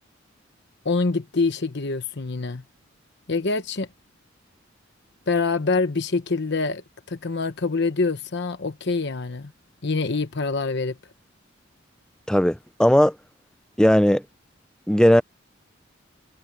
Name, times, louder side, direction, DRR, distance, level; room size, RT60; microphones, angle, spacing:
voice 1, 0.8-2.6 3.3-3.9 5.3-9.5 9.8-11.0, left 3 dB, 60° left, 1.0 m, -25 dB
voice 2, 12.3-13.2 13.8-14.2 14.9-15.2, equal, 5° left, 0.5 m, -17 dB
head